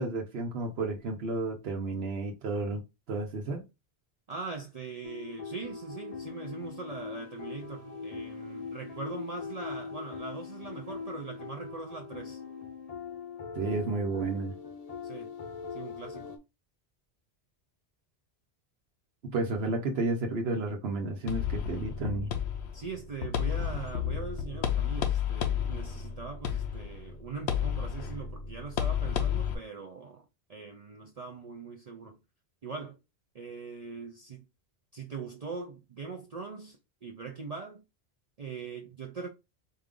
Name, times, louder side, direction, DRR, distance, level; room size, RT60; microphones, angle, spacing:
voice 1, 0.0-2.8 3.1-3.6 13.5-14.5 19.2-22.3, right 3 dB, 70° right, 1.0 m, -32 dB
voice 2, 4.3-12.4 15.0-15.3 15.7-16.4 22.7-30.2 30.5-32.2 32.6-33.0 33.3-34.4 34.9-37.8 38.4-39.3, right 4 dB, 45° right, 0.5 m, -41 dB
sound 1, 5.0-16.4, left 5 dB, 40° left, 0.7 m, -41 dB
sound 2, 21.3-29.5, left 9 dB, 80° left, 0.9 m, -31 dB
4.4 x 2.4 x 3.6 m
omnidirectional pair, 1.1 m